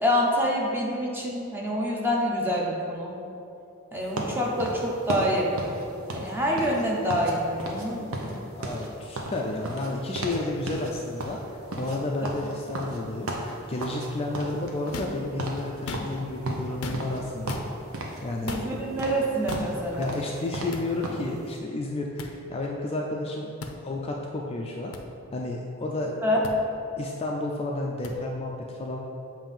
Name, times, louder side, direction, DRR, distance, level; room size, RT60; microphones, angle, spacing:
voice 1, 0.0-3.1 3.9-5.8 6.1-8.4 18.4-20.1 26.2-26.4, equal, 10° right, -3 dB, 0.8 m, -26 dB
sound 1, 4.2-7.3 7.6-7.9 8.1-10.4 10.7-10.9 11.2-14.1 14.3-15.1 15.4-15.6 15.9-17.2 17.5-18.2 18.5-21.3, right 1 dB, 80° right, 0.8 m, -34 dB
voice 2, 8.6-18.6 20.0-23.5 23.8-24.9 25.3-26.2 27.0-29.0, left 2 dB, 30° left, 0 dB, 0.4 m, -32 dB
sound 2, 14.9-15.2 15.7-16.3 16.8-17.2 17.5-17.7 18.5-18.7 19.5-19.7 20.7-20.9 22.2-22.3 23.6-23.8 24.9-25.0 26.4-26.5 28.0-28.1, left 3 dB, 85° left, 0.5 m, -36 dB
7.2 x 2.7 x 5.3 m, 2.7 s
head